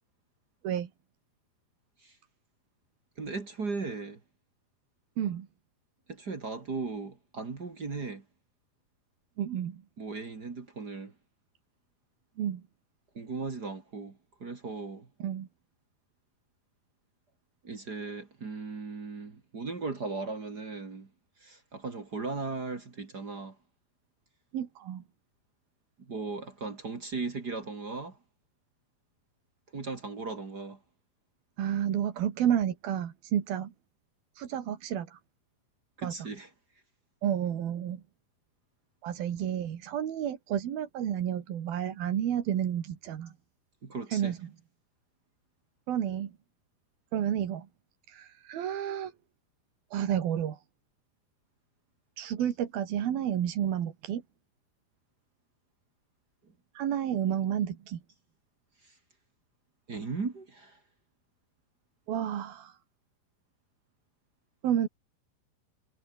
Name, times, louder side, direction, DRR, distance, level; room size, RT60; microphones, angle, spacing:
voice 1, 3.2-4.2 6.1-8.2 10.0-11.1 13.1-15.1 17.6-21.1 21.4-23.6 26.0-28.2 29.7-30.8 36.0-36.5 43.8-44.3 52.4-52.5 58.8-58.9 59.9-60.8, right 4 dB, 30° right, 2.1 m, -37 dB
voice 2, 9.4-9.8 12.4-12.6 15.2-15.5 24.5-25.0 31.6-33.7 34.4-35.2 36.0-36.3 37.2-38.0 39.0-43.3 44.1-44.5 45.9-46.3 47.1-47.7 48.1-49.1 49.9-50.6 52.2-54.2 56.8-58.0 62.1-62.8 64.6-64.9, right 10 dB, 65° right, 3.9 m, -31 dB
omnidirectional pair, 4.7 m